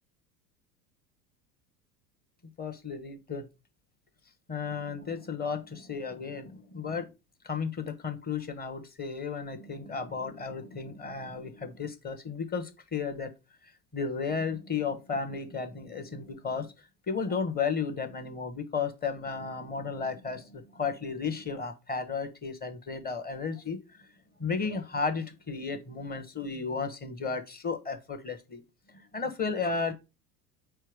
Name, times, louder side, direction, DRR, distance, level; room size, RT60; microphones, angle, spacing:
voice 1, 2.6-3.5 4.5-7.1 7.4-13.3 13.9-16.7 17.1-24.1 24.4-28.6 28.9-29.9, left 5 dB, 20° left, 8 dB, 1.1 m, -34 dB
4.5 x 4.4 x 4.7 m, 0.26 s
figure-of-eight pair, 80°, 49 cm